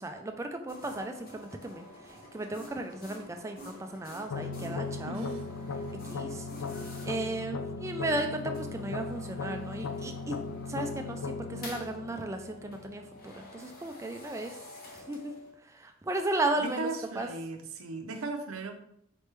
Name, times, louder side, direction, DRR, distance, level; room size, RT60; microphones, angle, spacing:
voice 1, 0.0-5.3 6.0-6.5 7.0-10.4 10.7-14.6 14.9-17.3, right 2 dB, 15° right, 5 dB, 0.3 m, -35 dB
sound 1, 0.7-15.5, left 1 dB, 45° left, 0.9 m, -49 dB
sound 2, 4.3-13.3, left 4 dB, 65° left, 0.3 m, -38 dB
voice 2, 5.1-5.5 16.6-18.8, right 3 dB, 80° right, 6 dB, 0.6 m, -37 dB
4.1 x 3.2 x 3.3 m, 0.74 s
head